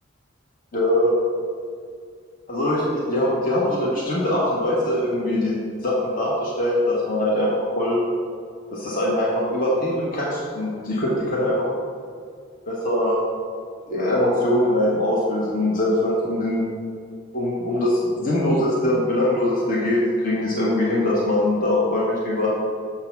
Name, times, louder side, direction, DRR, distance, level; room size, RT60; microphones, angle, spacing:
voice 1, 0.7-1.1 2.5-5.5 5.8-7.5 7.8-8.0 8.7-11.7 12.7-13.2 13.9-16.7 17.3-22.5, left 1 dB, 45° left, -5 dB, 1.2 m, -22 dB
7.0 x 3.8 x 5.8 m, 2.2 s
head